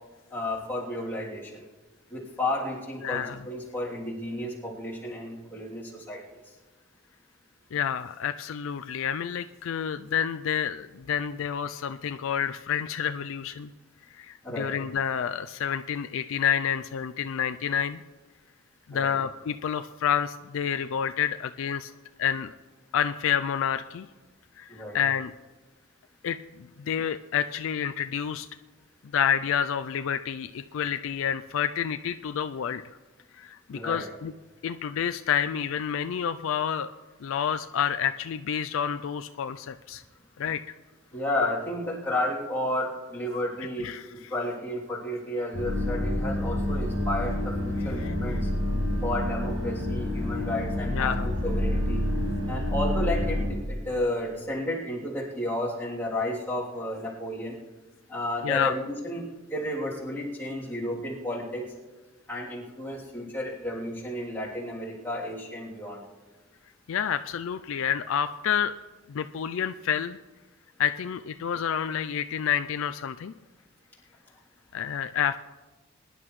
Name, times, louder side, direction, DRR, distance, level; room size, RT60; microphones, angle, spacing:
voice 1, 0.3-1.7 2.1-6.4 14.4-14.7 18.9-19.1 24.7-25.0 33.7-34.0 41.1-48.5 49.0-52.0 52.5-57.6 58.1-61.7 62.3-66.0, left 1 dB, 10° left, -7 dB, 3.1 m, -32 dB
voice 2, 3.0-3.4 7.7-13.7 14.1-18.0 18.9-21.9 22.2-22.5 22.9-24.1 24.6-25.3 26.2-28.5 29.1-32.8 33.4-34.3 34.6-36.9 37.2-40.0 40.4-40.6 43.8-44.1 48.0-48.1 50.9-51.3 58.4-58.7 66.9-68.7 69.1-70.2 70.8-73.3 74.7-75.4, left 8 dB, 65° left, 10 dB, 0.4 m, -29 dB
sound 1, 45.5-53.5, left 1 dB, 60° right, 5.3 m, -28 dB
22.0 x 11.0 x 3.2 m, 1.3 s
head